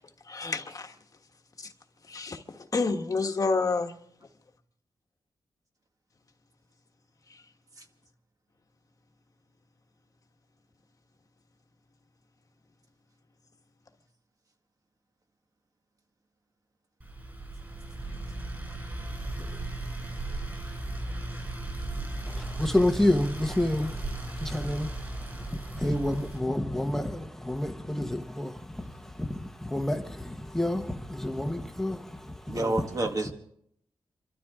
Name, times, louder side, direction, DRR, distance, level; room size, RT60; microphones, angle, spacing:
voice 1, 0.3-0.9 1.6-1.7 2.1-3.9 7.3-7.4, left 3 dB, 40° left, 1.4 m, -29 dB
sound 1, 17.0-26.4, right 2 dB, 20° right, 5.2 m, -36 dB
voice 2, 22.3-32.8, left 1 dB, 5° left, 1.2 m, -29 dB
voice 3, 32.5-33.3, right 2 dB, 40° right, 1.8 m, -29 dB
28.5 x 13.0 x 3.7 m
wide cardioid pair, 150°, 9 cm